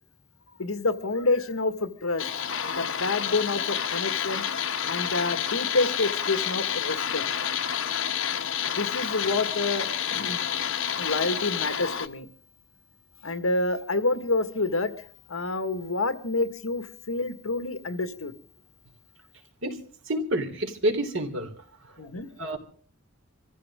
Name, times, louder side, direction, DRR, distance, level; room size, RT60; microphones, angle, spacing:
voice 1, 0.6-2.3 2.8-4.4 4.9-7.2 8.7-10.4 11.0-12.3 13.2-18.3 22.0-22.3, left 3 dB, 85° left, 10 dB, 1.8 m, -28 dB
sound 1, 2.2-12.1, left 8 dB, 65° left, 1.3 m, -29 dB
voice 2, 20.1-21.5 22.0-22.1 22.4-22.6, right 1 dB, 65° right, 5 dB, 3.4 m, -28 dB
26.0 x 15.0 x 3.7 m, 0.44 s
head